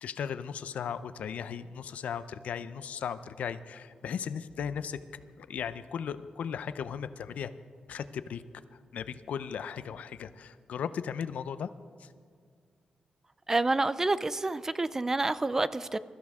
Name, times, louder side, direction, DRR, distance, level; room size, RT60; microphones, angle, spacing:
voice 1, 0.0-7.5 7.9-8.4 8.9-11.7 12.0-12.1, left 7 dB, 85° left, 13 dB, 0.5 m, -37 dB
voice 2, 13.5-16.0, right 2 dB, 20° right, 16 dB, 0.4 m, -28 dB
22.0 x 14.0 x 3.6 m, 2.1 s
wide cardioid pair, 125°, 2 cm